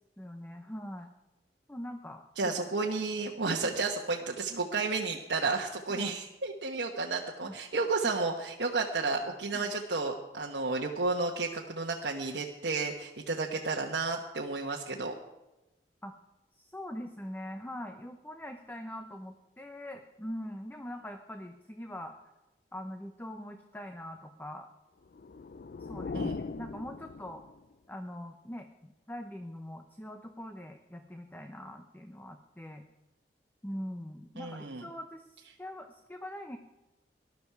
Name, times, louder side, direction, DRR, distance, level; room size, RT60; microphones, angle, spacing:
voice 1, 0.2-1.1 1.7-2.5 3.6-3.7 5.9-6.2 7.4-7.6 9.5-9.7 16.0-16.1 16.5-22.2 22.7-24.7 25.8-27.4 27.9-32.9 33.6-36.6, left 1 dB, 10° left, 6 dB, 0.8 m, -43 dB
voice 2, 2.4-15.1 26.1-26.4 34.4-34.9, right 3 dB, 75° right, 0 dB, 1.1 m, -32 dB
sound 1, 25.0-27.7, left 4 dB, 55° left, 0.4 m, -39 dB
18.5 x 12.0 x 4.7 m, 1.0 s
head